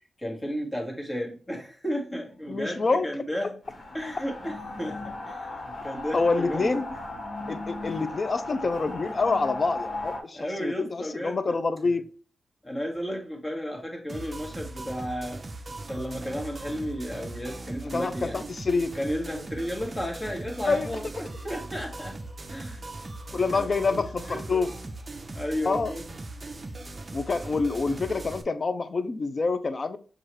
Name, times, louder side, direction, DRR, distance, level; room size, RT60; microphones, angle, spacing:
voice 1, 0.2-3.6 3.9-6.7 10.3-11.6 12.6-18.4 18.9-22.2 22.5-22.9 23.3-24.7 25.3-26.1, equal, 20° left, 1.3 m, -33 dB
voice 2, 2.5-3.1 6.1-6.8 7.5-12.1 17.9-19.0 20.6-20.9 23.3-24.7 25.6-25.9 27.1-30.0, left 4 dB, 40° left, 0.4 m, -27 dB
sound 1, 3.6-10.2, left 2 dB, 55° left, 1.3 m, -36 dB
sound 2, 14.1-28.4, right 2 dB, 30° right, 0.6 m, -39 dB
6.2 x 2.4 x 3.0 m
wide cardioid pair, 110°, 0 cm